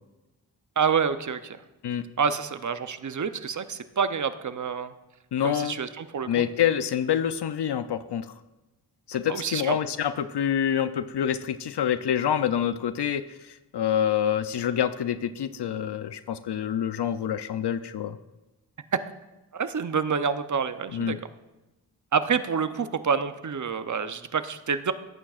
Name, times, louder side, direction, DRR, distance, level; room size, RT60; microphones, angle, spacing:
voice 1, 0.8-1.6 2.2-4.9 5.4-6.4 9.3-9.8 19.5-21.2 22.1-24.9, right 6 dB, 45° right, 11 dB, 0.7 m, -27 dB
voice 2, 5.3-5.7 6.3-8.3 9.1-18.2 20.9-21.2, left 9 dB, 75° left, 11 dB, 0.6 m, -27 dB
17.0 x 8.8 x 2.4 m, 1.0 s
wide cardioid pair, 70°, 40 cm